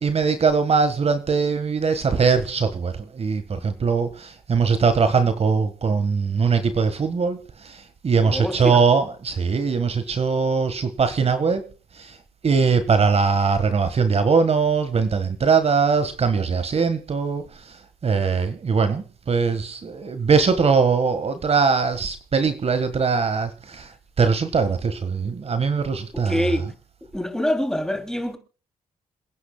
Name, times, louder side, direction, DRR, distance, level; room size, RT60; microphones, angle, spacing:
voice 1, 0.0-7.4 7.6-11.6 12.0-12.1 12.4-17.4 18.0-23.9 24.2-26.4, right 5 dB, 45° right, 1.5 m, -21 dB
voice 2, 8.2-8.8 26.1-26.7 27.1-28.4, left 1 dB, 5° left, 2.9 m, -25 dB
28.0 x 9.9 x 2.3 m
cardioid pair, 85°, 14 cm